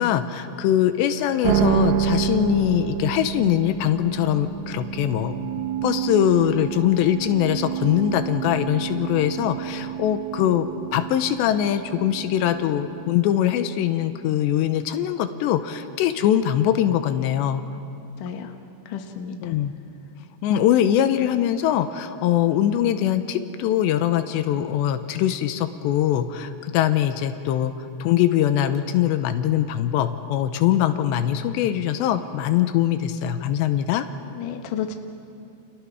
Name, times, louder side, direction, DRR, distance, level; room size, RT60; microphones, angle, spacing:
voice 1, 0.0-5.3 5.8-10.7 10.9-17.6 19.4-19.7 20.4-27.7 28.0-34.1, left 11 dB, 85° left, 9 dB, 3.1 m, -22 dB
sound 1, 1.4-13.7, right 9 dB, 90° right, 1.9 m, -28 dB
voice 2, 18.2-18.5 18.9-19.4 34.3-34.9, left 8 dB, 60° left, 5 dB, 2.6 m, -31 dB
30.0 x 29.0 x 4.8 m, 2.5 s
omnidirectional pair, 4.9 m